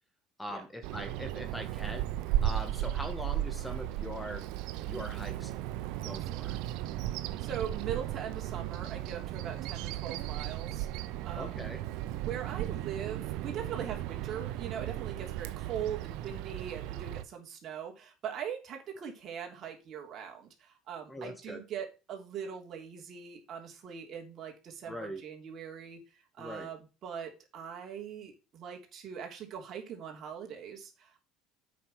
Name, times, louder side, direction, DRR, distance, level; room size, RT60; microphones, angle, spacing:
voice 1, 0.4-2.1 2.4-4.4 4.9-5.5 6.0-6.6 11.3-11.8 21.1-21.6 24.9-25.2 26.4-26.7, equal, 5° left, 6 dB, 2.2 m, -41 dB
Bird vocalization bird call bird song, 0.8-17.2, right 13 dB, 80° right, 0.8 m, -35 dB
voice 2, 7.4-11.7 12.2-26.0 26.4-31.2, right 8 dB, 50° right, 1 dB, 3.4 m, -41 dB
8.4 x 6.1 x 5.9 m, 0.30 s
cardioid pair, 110°, 0 cm